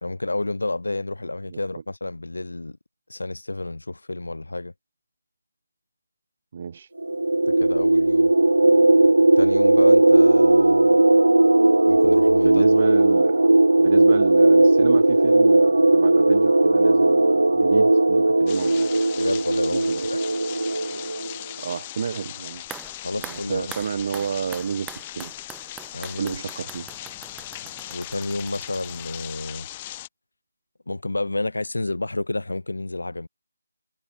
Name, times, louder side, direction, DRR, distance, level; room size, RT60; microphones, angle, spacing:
voice 1, 0.0-2.8 3.1-4.7 7.5-8.3 9.4-11.0 11.9-12.8 19.2-20.2 23.0-23.7 25.9-26.4 27.9-29.7 30.9-33.3, left 2 dB, 80° left, 1.1 m, -30 dB
voice 2, 6.5-6.9 12.4-13.5 13.8-18.9 19.7-20.0 21.6-22.6 23.1-25.3 26.2-27.0, right 6 dB, 40° right, 2.0 m, -30 dB
sound 1, 7.0-21.3, right 2 dB, 85° right, 0.5 m, -17 dB
sound 2, 18.5-30.1, left 15 dB, 20° left, 1.9 m, -38 dB
sound 3, 22.6-29.7 29.9-30.0, right 9 dB, 10° right, 1.1 m, -44 dB
figure-of-eight pair, 160°, 0 cm